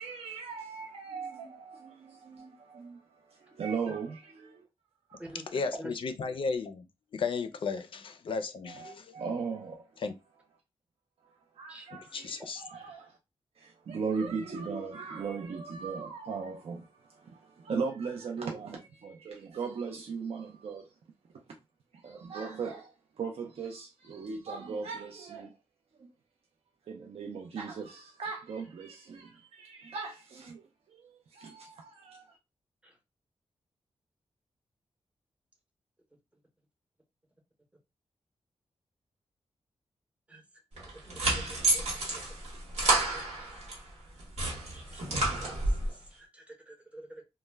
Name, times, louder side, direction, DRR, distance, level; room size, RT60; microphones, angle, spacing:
voice 1, 0.0-4.6 5.1-5.2 8.7-9.9 11.2-13.2 13.6-21.0 21.9-25.6 26.0-26.1 26.9-32.4, right 5 dB, 65° right, 0.5 m, -38 dB
voice 2, 5.5-6.9 7.1-9.2 10.0-10.1 12.1-12.6, left 4 dB, 55° left, 0.4 m, -34 dB
sound 1, 40.8-43.8 44.2-45.9, right 2 dB, 85° right, 1.0 m, -30 dB
voice 3, 44.7-45.3 46.1-47.2, right 1 dB, 10° right, 0.7 m, -47 dB
2.1 x 2.1 x 3.3 m
wide cardioid pair, 140°, 11 cm